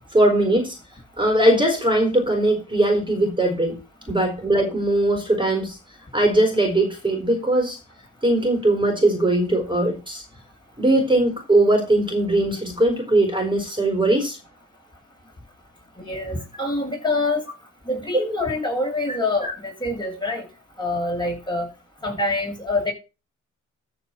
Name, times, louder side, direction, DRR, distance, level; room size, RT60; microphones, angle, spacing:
voice 1, 0.1-0.8 1.2-3.8 4.1-5.8 6.1-7.8 8.2-10.2 10.8-14.4 19.4-19.5, right 1 dB, 15° right, 4.2 m, -20 dB
voice 2, 16.0-17.4 17.9-20.4 20.8-21.7 22.0-22.9, left 2 dB, 15° left, 7.6 m, -25 dB
14.0 x 4.9 x 5.8 m
cardioid pair, 90°, 30 cm